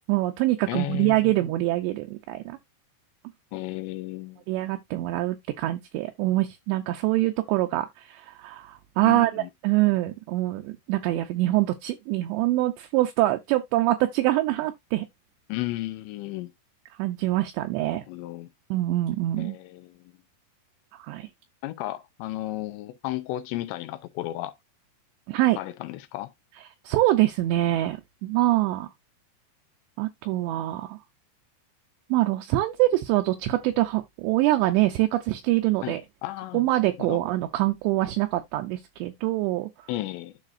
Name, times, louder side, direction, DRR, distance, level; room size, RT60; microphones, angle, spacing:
voice 1, 0.1-2.6 4.5-15.1 17.0-18.0 18.7-19.6 21.0-21.3 25.3-25.6 26.9-28.9 30.0-31.0 32.1-36.0 36.5-39.7, right 16 dB, 80° right, 2.6 m, -24 dB
voice 2, 0.7-1.3 3.5-4.4 9.0-9.5 15.5-16.5 17.8-18.5 19.4-20.0 21.6-24.5 25.6-26.3 35.8-35.9 36.2-36.7 37.0-37.2 39.9-40.4, left 16 dB, 85° left, 2.7 m, -33 dB
11.5 x 4.0 x 2.5 m
omnidirectional pair, 5.4 m